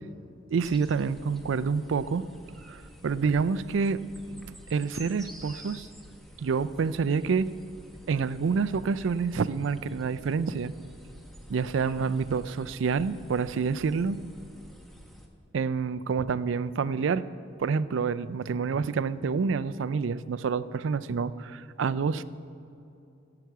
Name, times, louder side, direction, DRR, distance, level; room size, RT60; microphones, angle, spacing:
voice 1, 0.5-2.2 2.7-4.0 4.3-5.9 6.4-7.5 8.1-10.7 11.5-14.2 15.5-17.2 17.6-22.2, right 5 dB, 70° right, 16 dB, 0.4 m, -28 dB
sound 1, 0.6-15.3, equal, ahead, 1.0 m, -50 dB
14.5 x 5.9 x 8.1 m, 2.7 s
head